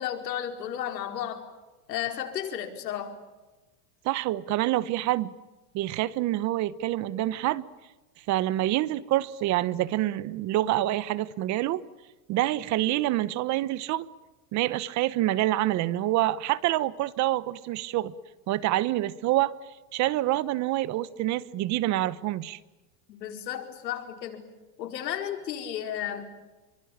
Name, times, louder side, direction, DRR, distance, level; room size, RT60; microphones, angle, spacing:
voice 1, 0.0-1.4 1.9-3.2 23.1-24.4 24.8-26.2, left 10 dB, 85° left, 5.0 m, -33 dB
voice 2, 4.0-5.3 5.7-7.7 8.3-11.8 12.3-14.1 14.5-18.1 18.5-19.5 19.9-22.6, right 15 dB, 35° right, 1.0 m, -26 dB
27.0 x 24.5 x 8.8 m
supercardioid pair, 140°, 49 cm